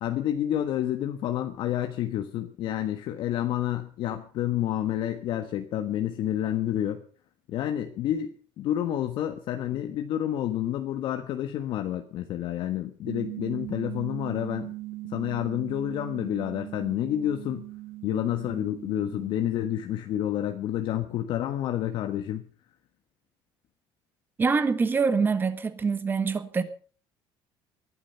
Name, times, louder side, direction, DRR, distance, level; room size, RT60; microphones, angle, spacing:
voice 1, 0.0-7.0 7.5-14.7 15.1-17.6 18.0-22.4, left 11 dB, 60° left, 1.4 m, -29 dB
sound 1, 13.1-19.5, right 18 dB, 75° right, 1.2 m, -39 dB
voice 2, 24.4-26.6, right 5 dB, 20° right, 1.7 m, -25 dB
20.5 x 11.5 x 5.7 m
cardioid pair, 155°, 10 cm